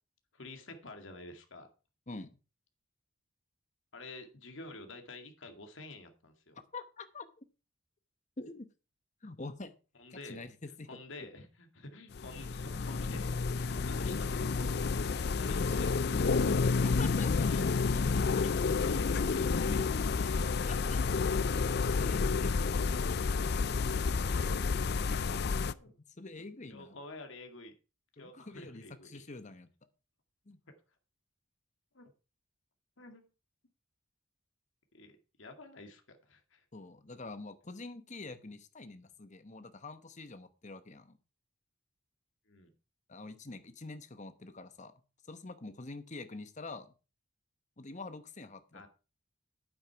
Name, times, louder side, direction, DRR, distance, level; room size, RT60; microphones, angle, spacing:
voice 1, 0.3-1.7 3.9-6.6 10.0-10.5 10.9-16.6 17.3-17.6 17.9-20.7 25.7-25.9 26.7-27.7 28.2-29.3 30.7-30.8 31.9-32.1 33.0-33.3 34.9-36.6 42.5-42.7 48.7-48.9, left 2 dB, 70° left, 5 dB, 2.1 m, -49 dB
voice 2, 6.7-7.4 8.4-8.7 9.2-9.8 10.1-10.9 16.8-17.5 19.2-19.4 20.6-21.2 22.0-22.7 26.2-27.0 28.2-29.7 30.5-30.6 36.7-41.2 43.1-44.9 45.3-46.9 47.8-48.9, left 3 dB, 35° left, 10 dB, 1.1 m, -46 dB
sound 1, 12.1-25.7, left 4 dB, 55° left, 0.5 m, -30 dB
9.2 x 8.9 x 4.7 m, 0.32 s
head